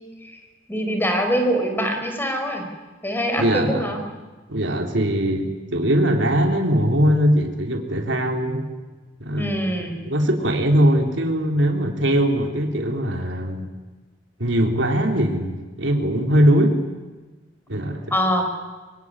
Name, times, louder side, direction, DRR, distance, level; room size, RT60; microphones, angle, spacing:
voice 1, 0.7-2.7 3.0-4.0 9.4-10.0 18.1-18.5, equal, 10° left, 4 dB, 5.3 m, -23 dB
voice 2, 3.4-4.0 4.5-8.7 9.2-9.6 10.0-13.7 14.4-16.8 17.7-18.1, equal, 75° right, 3 dB, 3.5 m, -21 dB
24.5 x 24.0 x 9.8 m, 1.3 s
head